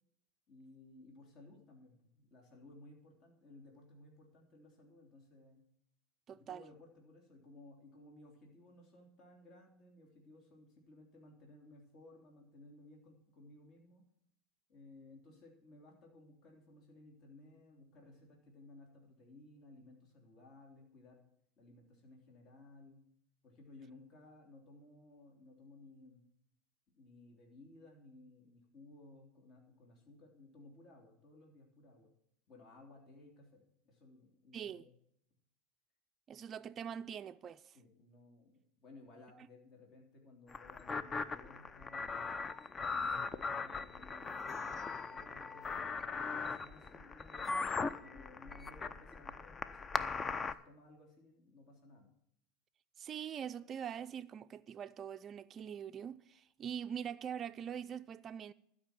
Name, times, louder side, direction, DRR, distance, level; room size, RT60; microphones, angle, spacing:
voice 1, 0.5-5.6 6.3-14.0 14.7-21.2 21.6-23.0 23.4-26.2 27.0-32.1 32.5-35.0 37.7-42.3 42.8-52.1, left 2 dB, 50° left, 3.1 m, -59 dB
voice 2, 6.3-6.6 34.5-34.9 36.3-37.8 53.0-58.5, right 8 dB, 35° right, 0.4 m, -43 dB
sound 1, 40.5-50.5, left 4 dB, 25° left, 0.6 m, -39 dB
12.0 x 5.4 x 9.0 m
hypercardioid pair, 90°, 0 cm